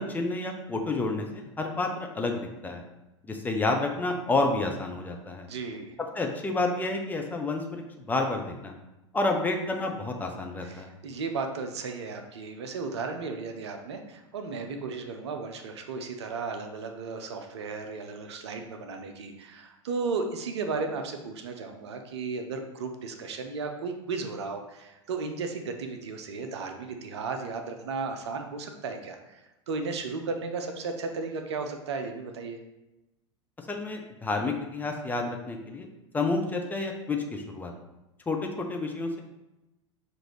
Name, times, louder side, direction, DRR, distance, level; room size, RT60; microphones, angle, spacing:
voice 1, 0.0-2.8 3.2-5.5 6.2-7.8 8.1-8.7 9.1-10.9 33.7-35.9 36.1-37.7 38.3-39.2, left 2 dB, 10° left, 2 dB, 0.4 m, -29 dB
voice 2, 5.5-5.9 10.6-29.4 29.7-32.6, right 4 dB, 60° right, 6 dB, 0.5 m, -35 dB
6.1 x 2.5 x 3.1 m, 0.97 s
figure-of-eight pair, 85°, 16 cm